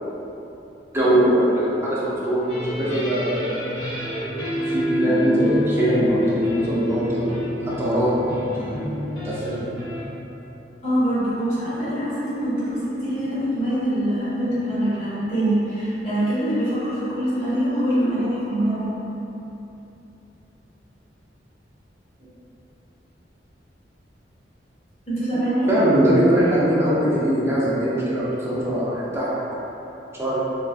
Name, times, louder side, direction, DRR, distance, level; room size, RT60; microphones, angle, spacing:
voice 1, 0.9-2.4 2.8-3.6 4.7-7.4 7.8-8.1 8.5-8.8 9.2-9.6 25.7-29.4 30.1-30.4, right 1 dB, 15° right, -9 dB, 0.6 m, -21 dB
sound 1, 2.5-10.0, equal, 85° left, 1.1 m, -27 dB
voice 2, 10.8-18.9 25.1-25.7, right 1 dB, 35° left, -12 dB, 1.1 m, -24 dB
3.1 x 2.4 x 2.4 m, 3.0 s
head